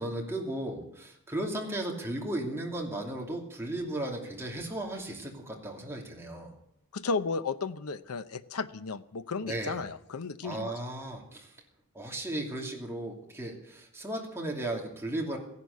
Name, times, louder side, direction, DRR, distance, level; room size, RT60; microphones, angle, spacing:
voice 1, 0.0-6.5 9.4-9.8 10.4-11.5 11.9-15.4, right 1 dB, 10° right, 0 dB, 2.7 m, -35 dB
voice 2, 6.9-10.7, left 4 dB, 80° left, 12 dB, 0.7 m, -34 dB
15.5 x 11.0 x 8.2 m, 0.76 s
head